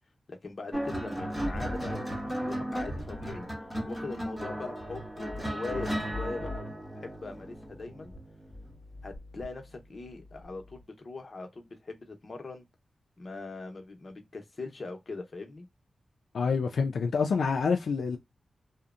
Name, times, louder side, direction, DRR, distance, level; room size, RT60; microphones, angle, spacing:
voice 1, 0.3-3.5 3.8-6.7 6.9-8.1 9.0-12.6 13.2-15.7, left 3 dB, 50° left, 0.8 m, -41 dB
sound 1, 0.7-9.4 10.4-10.7, equal, ahead, 0.9 m, -35 dB
voice 2, 16.3-18.2, left 5 dB, 90° left, 0.4 m, -27 dB
2.7 x 2.1 x 2.4 m
wide cardioid pair, 95°, 0 cm